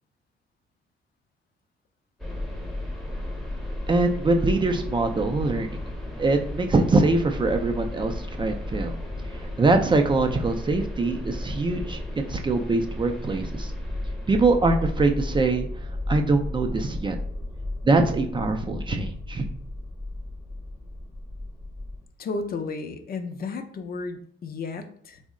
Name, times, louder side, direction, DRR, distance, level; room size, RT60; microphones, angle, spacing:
sound 1, 2.2-22.0, left 1 dB, ahead, 0.7 m, -34 dB
voice 1, 3.9-5.7 6.2-8.9 9.6-13.7 14.3-15.7 16.1-17.2 17.8-19.5, right 3 dB, 25° right, 4 dB, 0.4 m, -23 dB
voice 2, 22.2-25.2, left 4 dB, 50° left, 6 dB, 0.5 m, -33 dB
3.6 x 2.1 x 3.6 m, 0.63 s
cardioid pair, 90°, 20 cm